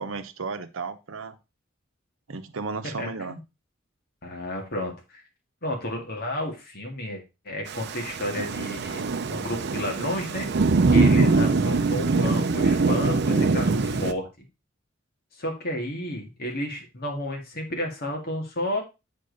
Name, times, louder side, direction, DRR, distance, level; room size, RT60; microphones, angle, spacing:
voice 1, 0.0-1.4 2.3-3.4 11.2-11.3, right 4 dB, 85° right, 10 dB, 0.8 m, -34 dB
voice 2, 3.0-3.4 4.2-5.2 5.6-10.5 10.9-14.3 15.4-18.8, left 1 dB, 50° left, 2 dB, 2.1 m, -31 dB
Thunder / Rain, 7.7-14.1, right 3 dB, 55° right, 0.5 m, -23 dB
7.6 x 5.1 x 4.0 m, 0.26 s
head